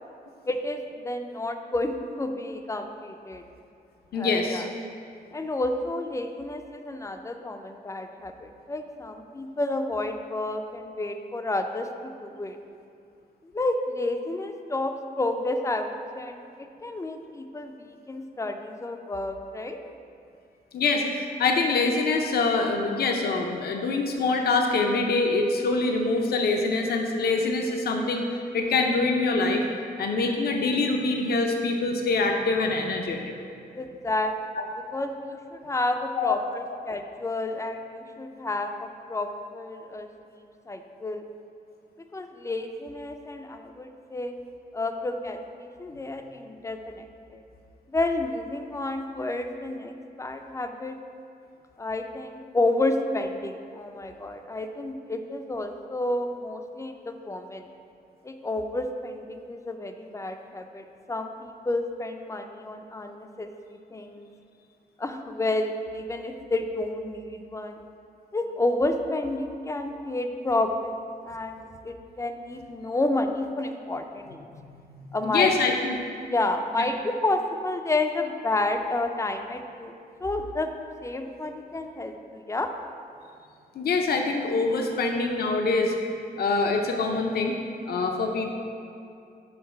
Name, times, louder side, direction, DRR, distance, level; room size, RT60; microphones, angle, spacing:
voice 1, 0.4-3.4 4.1-4.7 5.3-12.6 13.5-19.8 33.8-34.3 34.9-40.4 40.7-41.2 42.1-44.3 44.7-47.4 47.9-51.0 51.8-57.7 58.2-63.5 63.9-64.3 65.0-67.8 68.3-74.5 75.1-75.8 76.2-79.9 80.2-80.7 81.0-82.7, left 2 dB, 20° left, 6 dB, 0.4 m, -30 dB
voice 2, 4.1-4.6 20.7-28.3 28.5-29.6 30.0-33.3 34.6-34.7 36.2-36.4 75.2-76.0 83.8-85.9 86.4-87.6 87.9-88.5, left 3 dB, 70° left, 2 dB, 0.6 m, -24 dB
6.6 x 3.9 x 5.6 m, 2.5 s
wide cardioid pair, 115°, 17 cm